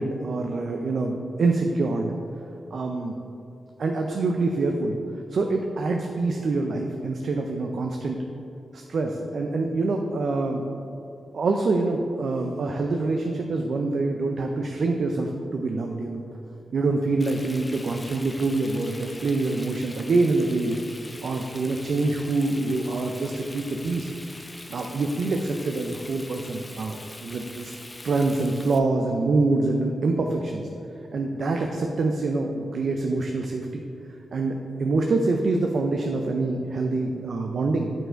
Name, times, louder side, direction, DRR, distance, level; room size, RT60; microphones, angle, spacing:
voice 1, 0.0-2.1 2.7-3.2 3.8-5.0 5.3-8.2 8.7-10.6 11.3-16.2 16.7-20.8 21.2-24.1 24.7-27.7 28.0-30.7 31.1-33.8 34.3-37.9, right 3 dB, 70° right, 3 dB, 0.4 m, -25 dB
Frying (food), 17.2-28.8, left 2 dB, 25° left, 0.5 m, -43 dB
6.5 x 4.6 x 4.4 m, 2.6 s
cardioid pair, 60°, 0 cm